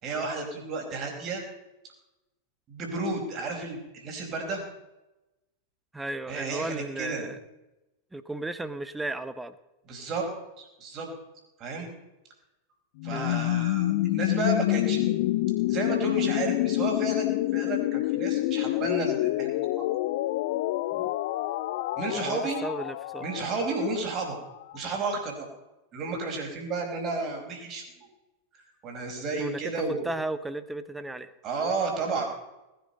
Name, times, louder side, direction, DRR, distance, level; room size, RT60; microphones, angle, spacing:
voice 1, 0.0-1.4 2.7-4.6 6.3-7.3 9.9-10.3 10.6-11.1 11.6-11.9 13.0-15.1 15.7-19.9 22.0-22.6 23.2-24.4 24.7-25.5 25.9-27.8 28.8-30.0 31.4-32.2, right 3 dB, 35° right, 2 dB, 4.8 m, -32 dB
voice 2, 5.9-7.4 8.1-9.5 13.1-13.4 20.9-21.1 22.2-23.3 29.4-31.3, right 2 dB, 5° right, 13 dB, 0.9 m, -35 dB
sound 1, 13.0-24.8, left 16 dB, 50° left, 0.5 m, -28 dB
20.0 x 10.5 x 5.4 m, 0.98 s
figure-of-eight pair, 90°, 0 cm